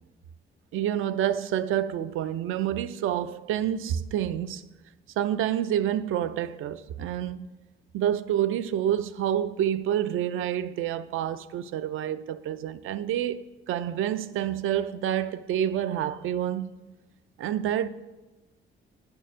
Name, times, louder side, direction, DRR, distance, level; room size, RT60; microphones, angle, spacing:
voice 1, 0.7-4.6 5.2-7.5 7.9-16.7 17.4-17.9, right 10 dB, 85° right, 0.4 m, -28 dB
9.2 x 4.5 x 6.1 m
cardioid pair, 135°, 20 cm